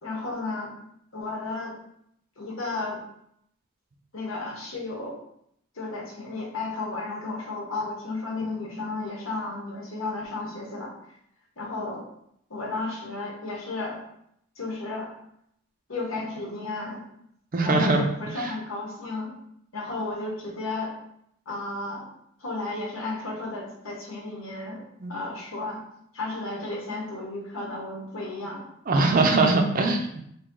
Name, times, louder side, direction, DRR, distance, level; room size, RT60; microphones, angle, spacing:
voice 1, 0.0-0.7 1.1-1.8 2.4-3.0 4.1-5.1 5.7-10.9 11.6-12.0 12.5-14.0 14.6-15.1 15.9-17.0 17.6-19.3 19.7-20.9 21.5-22.1 22.4-24.8 25.1-25.8 26.1-28.6, left 3 dB, 85° left, -1 dB, 1.0 m, -33 dB
voice 2, 17.5-18.0 18.4-18.5 25.0-25.1 28.9-30.2, right 3 dB, 40° right, 4 dB, 0.4 m, -22 dB
3.1 x 2.8 x 3.6 m, 0.73 s
head